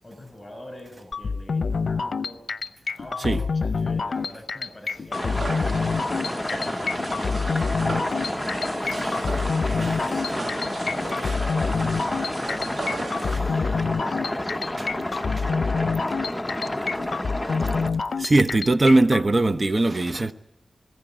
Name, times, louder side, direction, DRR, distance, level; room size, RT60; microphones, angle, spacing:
voice 1, 0.0-2.4 3.0-8.1 8.8-13.0 13.5-15.3, left 1 dB, 35° left, 5.8 m, -44 dB
sound 1, 1.1-19.2, left 4 dB, 75° left, 0.7 m, -27 dB
sound 2, 5.1-17.9, left 1 dB, 15° left, 1.0 m, -30 dB
sound 3, 5.1-13.4, right 2 dB, 60° right, 2.2 m, -36 dB
voice 2, 9.8-10.2 11.3-11.4 13.2-13.6 18.2-20.3, right 2 dB, 40° right, 0.9 m, -21 dB
21.5 x 15.5 x 9.0 m
cardioid pair, 60°, 0 cm